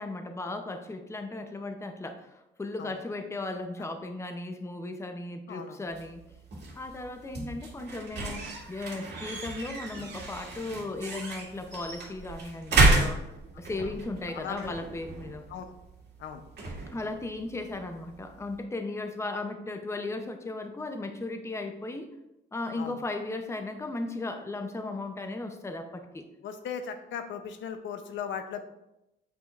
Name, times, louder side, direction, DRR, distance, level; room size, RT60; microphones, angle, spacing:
voice 1, 0.0-6.2 6.8-13.2 13.6-15.4 16.9-22.1 22.5-26.3, left 2 dB, 15° left, 6 dB, 0.6 m, -36 dB
voice 2, 5.5-5.8 13.7-13.9 14.3-14.9 15.5-15.7 16.2-16.4 22.8-23.0 26.4-28.7, left 7 dB, 70° left, 8 dB, 0.7 m, -38 dB
sound 1, 5.9-18.6, right 2 dB, 55° right, 2.1 m, -32 dB
8.0 x 4.9 x 2.5 m, 0.88 s
cardioid pair, 90°, 20 cm